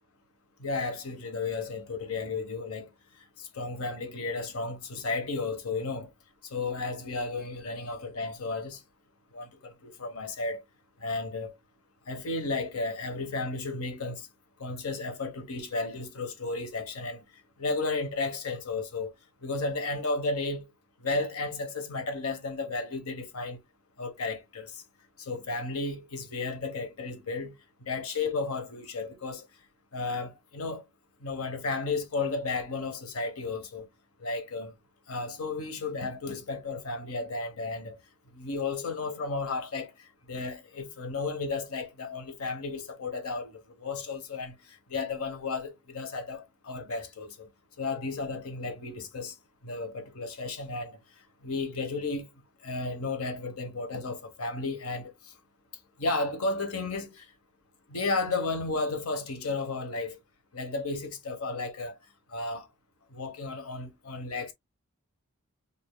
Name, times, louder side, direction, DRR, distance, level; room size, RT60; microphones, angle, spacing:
voice 1, 0.6-2.9 3.2-6.1 6.4-8.8 9.3-10.6 11.0-11.5 12.1-14.3 14.6-17.2 17.6-19.1 19.4-20.7 21.0-23.6 24.0-24.8 25.2-27.5 27.8-29.4 29.9-30.8 31.2-33.9 34.2-34.7 35.1-38.0 38.3-47.5 47.8-49.3 49.6-51.0 51.4-52.3 52.6-55.3 56.0-57.3 57.9-60.2 60.5-62.0 62.3-62.7 63.1-64.5, left 3 dB, 90° left, 1.1 m, -33 dB
5.1 x 2.7 x 2.3 m
head